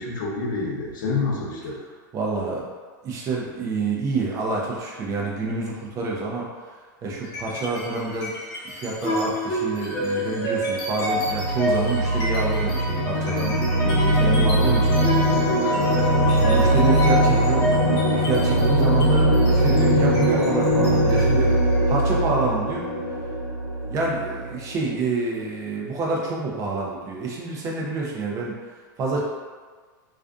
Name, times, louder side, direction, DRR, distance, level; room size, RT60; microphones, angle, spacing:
voice 1, 0.0-1.8 13.8-14.7, left 3 dB, 80° left, -3 dB, 0.7 m, -28 dB
voice 2, 2.1-2.7 3.0-6.5 6.7-8.3 8.6-13.6 14.2-15.0 15.5-17.7 18.0-21.6 21.9-22.9 23.9-28.6 29.0-29.2, right 3 dB, 30° right, -3 dB, 0.6 m, -28 dB
sound 1, 7.2-7.8 8.1-24.7, right 1 dB, 35° left, 0.9 m, -21 dB
2.4 x 2.4 x 2.3 m, 1.5 s
supercardioid pair, 130°, 11 cm